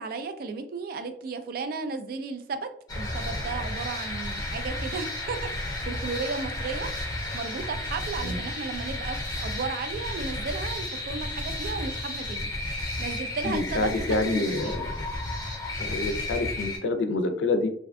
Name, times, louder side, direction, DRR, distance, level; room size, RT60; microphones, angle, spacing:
voice 1, 0.0-2.7 2.9-12.5 13.0-14.8, right 4 dB, 55° right, 8 dB, 0.3 m, -34 dB
sound 1, 2.9-16.8, left 1 dB, 20° left, 0.7 m, -33 dB
voice 2, 13.4-14.9 15.8-17.7, left 2 dB, 90° left, 8 dB, 0.4 m, -27 dB
2.5 x 2.1 x 2.5 m, 0.66 s
head